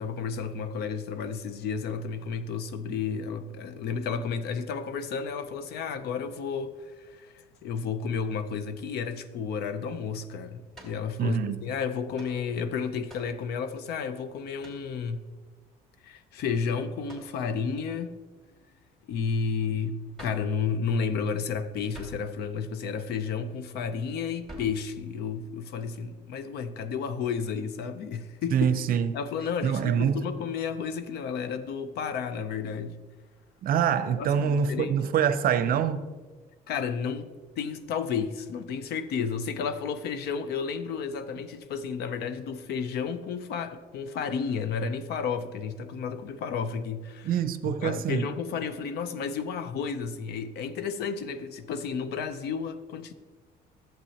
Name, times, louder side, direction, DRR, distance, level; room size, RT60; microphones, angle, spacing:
voice 1, 0.0-15.2 16.0-18.2 19.1-28.7 29.1-33.0 34.1-35.0 36.7-47.3 47.6-53.1, left 6 dB, 70° left, 0.6 m, -32 dB
sound 1, 10.7-11.0 12.1-12.4 13.1-13.4 14.6-14.9 17.1-17.4 20.1-20.5 21.9-22.3 24.5-24.8, right 1 dB, ahead, 2.6 m, -46 dB
voice 2, 11.2-11.6 28.5-29.1 29.6-30.2 33.6-36.1 47.2-48.3, right 8 dB, 60° right, 0.6 m, -25 dB
11.5 x 7.5 x 2.8 m
cardioid pair, 110°, 17 cm